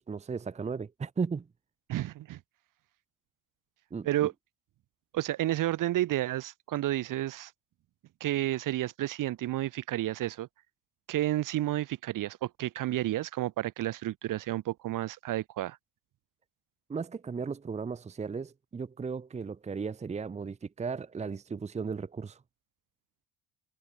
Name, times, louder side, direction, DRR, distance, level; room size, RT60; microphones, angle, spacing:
voice 1, 0.0-1.5 3.9-4.3 16.9-22.4, right 5 dB, 15° right, 1.3 m, -36 dB
voice 2, 1.9-2.4 4.0-4.3 5.1-7.5 8.2-10.5 11.1-15.8, right 14 dB, 45° right, 2.2 m, -31 dB
cardioid pair, 165°, 44 cm